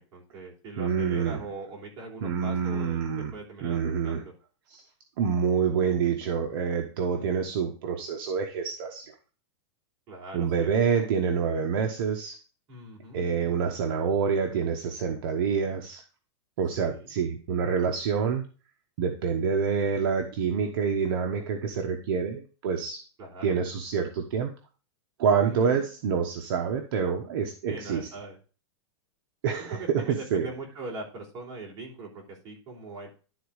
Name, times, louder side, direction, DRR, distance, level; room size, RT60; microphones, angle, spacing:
voice 1, 0.0-3.0 3.3-3.8 4.0-4.3 7.1-7.5 10.1-10.7 12.7-13.2 16.8-17.1 23.2-23.5 25.4-25.8 27.7-28.4 29.6-33.1, right 2 dB, 25° right, -4 dB, 3.3 m, -41 dB
voice 2, 0.8-1.4 2.2-3.3 3.6-4.2 4.7-4.8 5.2-9.1 10.3-12.4 13.1-16.0 16.6-18.4 19.0-23.0 23.4-24.5 25.2-28.0 29.4-30.5, right 6 dB, 50° right, 3 dB, 1.2 m, -27 dB
11.5 x 4.1 x 4.8 m, 0.36 s
supercardioid pair, 175°, 15 cm